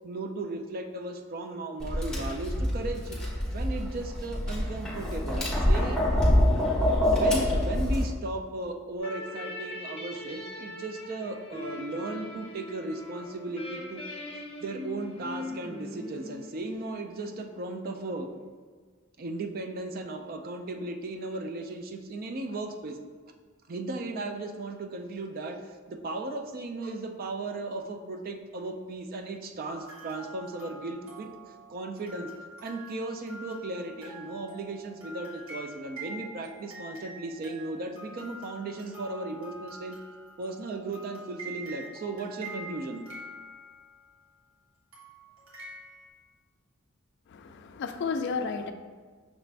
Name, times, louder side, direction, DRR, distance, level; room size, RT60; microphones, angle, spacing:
voice 1, 0.0-3.2 3.5-6.0 7.1-14.0 14.6-18.3 19.2-23.0 23.7-31.3 31.7-32.3 32.6-40.0 40.4-43.0, right 2 dB, 45° right, 5 dB, 0.4 m, -36 dB
Tap, 1.8-8.0, left 1 dB, 5° left, 1.0 m, -26 dB
sound 1, 9.0-17.5, left 2 dB, 30° left, 0.8 m, -41 dB
sound 2, 29.7-44.1 44.9-46.1, right 1 dB, 80° right, 1.3 m, -45 dB
voice 2, 47.3-48.7, left 5 dB, 55° left, 8 dB, 0.3 m, -32 dB
6.1 x 2.5 x 3.3 m, 1.5 s
head